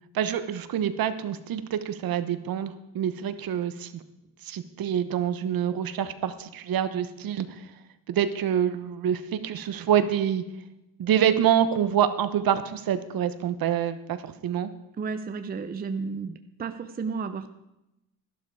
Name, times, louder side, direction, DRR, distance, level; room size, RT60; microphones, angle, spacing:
voice 1, 0.1-4.0 4.4-7.7 8.1-10.4 11.0-14.7, right 9 dB, 55° right, 11 dB, 1.1 m, -26 dB
voice 2, 15.0-17.5, right 5 dB, 20° right, 8 dB, 0.7 m, -32 dB
12.5 x 12.0 x 4.8 m, 0.90 s
cardioid pair, 125°, 42 cm